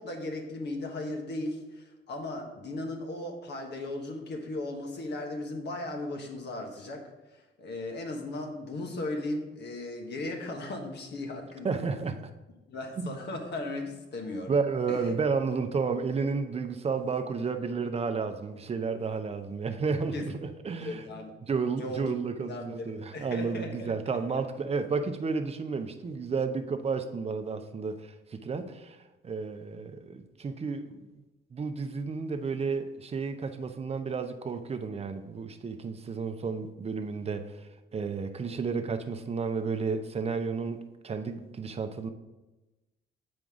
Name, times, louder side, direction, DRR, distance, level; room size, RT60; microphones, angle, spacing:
voice 1, 0.0-11.9 12.7-14.6 14.9-15.1 20.1-20.3 20.8-21.3 21.8-24.0 24.3-24.4, left 2 dB, 60° left, 3 dB, 1.3 m, -37 dB
voice 2, 11.6-12.2 13.0-13.1 14.5-21.0 21.5-29.0 29.2-31.0 31.5-37.4 37.9-42.1, right 5 dB, 30° right, 7 dB, 0.7 m, -32 dB
7.5 x 5.2 x 3.7 m, 1.1 s
cardioid pair, 90°, 20 cm